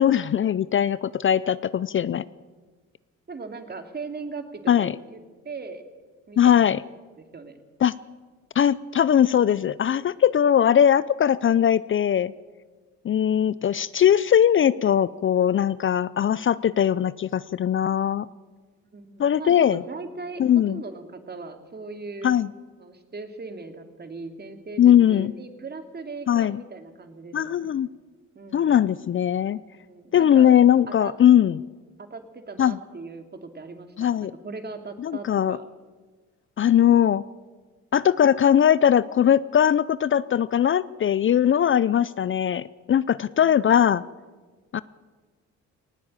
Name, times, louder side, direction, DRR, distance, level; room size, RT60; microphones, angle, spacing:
voice 1, 0.0-2.2 4.7-4.9 6.4-6.8 7.8-7.9 8.6-12.3 13.0-18.3 19.2-19.8 20.4-20.8 22.2-22.5 24.8-25.3 26.3-26.6 27.3-27.9 28.5-29.6 30.1-31.6 32.6-32.8 34.0-34.3 35.0-35.6 36.6-37.2 37.9-44.0 44.7-44.8, left 9 dB, 40° left, 18 dB, 0.5 m, -20 dB
voice 2, 3.3-5.2 5.4-5.8 6.3-6.8 7.2-7.6 18.9-22.3 22.8-27.7 28.3-28.9 29.9-30.6 31.0-31.1 32.0-35.6 43.4-43.5, right 4 dB, 35° right, 7 dB, 2.6 m, -39 dB
19.0 x 17.0 x 8.9 m, 1.4 s
cardioid pair, 90°, 30 cm